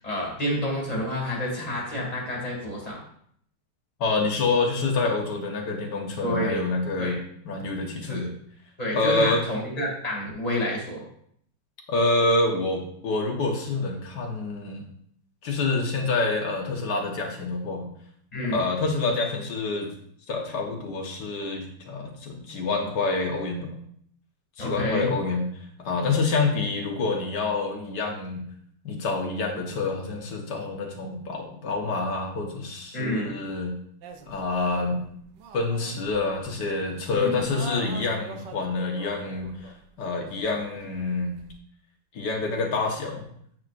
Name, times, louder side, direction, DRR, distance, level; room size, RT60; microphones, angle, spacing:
voice 1, 0.0-3.0 6.2-6.6 7.0-7.2 8.0-8.3 8.8-11.0 18.3-18.6 24.6-25.1 32.9-33.4 37.1-37.4, equal, 20° left, -4 dB, 2.5 m, -29 dB
voice 2, 4.0-7.2 7.5-8.3 8.9-9.4 11.9-14.8 15.4-17.9 18.5-19.9 20.3-23.7 24.6-25.5 25.8-28.4 28.8-33.7 34.3-35.0 35.5-39.7 40.0-41.4 42.1-43.3, left 3 dB, 75° left, 1 dB, 1.8 m, -27 dB
sound 1, 34.0-41.6, right 5 dB, 85° right, 1.4 m, -45 dB
8.4 x 6.1 x 2.5 m, 0.65 s
omnidirectional pair, 1.9 m